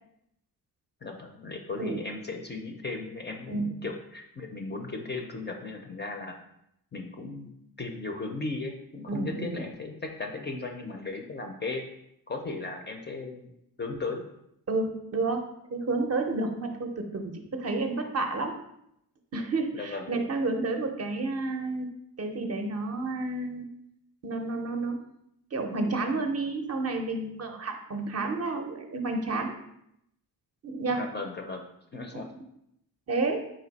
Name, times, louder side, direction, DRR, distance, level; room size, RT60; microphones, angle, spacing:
voice 1, 1.0-6.3 6.9-7.5 7.8-11.8 12.3-13.5 13.8-14.2 19.7-20.1 31.0-32.3, left 3 dB, 30° left, 3 dB, 0.4 m, -36 dB
voice 2, 9.1-9.7 14.7-15.4 15.7-18.6 19.3-21.9 22.2-23.6 24.2-25.0 25.5-29.5 30.6-31.1 32.1-32.2 33.1-33.4, right 3 dB, 40° right, 4 dB, 0.5 m, -30 dB
4.2 x 2.6 x 3.9 m, 0.78 s
wide cardioid pair, 120°, 40 cm